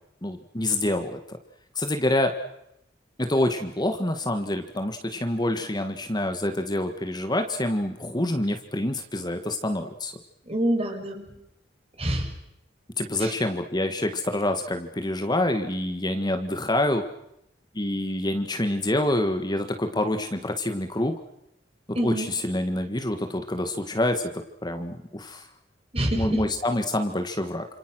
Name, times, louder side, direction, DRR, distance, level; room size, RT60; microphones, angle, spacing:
voice 1, 0.2-1.2 1.7-2.3 3.2-10.1 13.0-17.0 17.7-21.1 22.0-25.5 26.1-27.7, left 1 dB, 20° left, 6 dB, 1.7 m, -27 dB
voice 2, 10.5-11.3 12.0-12.3 13.2-13.3 21.9-22.3 25.9-26.4, right 1 dB, 30° right, 3 dB, 5.5 m, -26 dB
29.5 x 27.5 x 6.3 m, 0.81 s
head